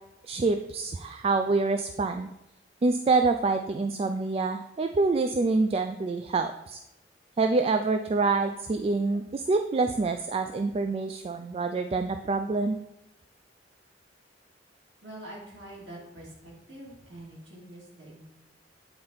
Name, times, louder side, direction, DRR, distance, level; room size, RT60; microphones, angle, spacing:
voice 1, 0.2-2.3 2.8-6.8 7.4-12.8, right 3 dB, 35° right, 7 dB, 0.3 m, -26 dB
voice 2, 15.0-18.2, right 1 dB, 85° right, -3 dB, 2.3 m, -45 dB
8.7 x 4.3 x 3.9 m, 0.92 s
head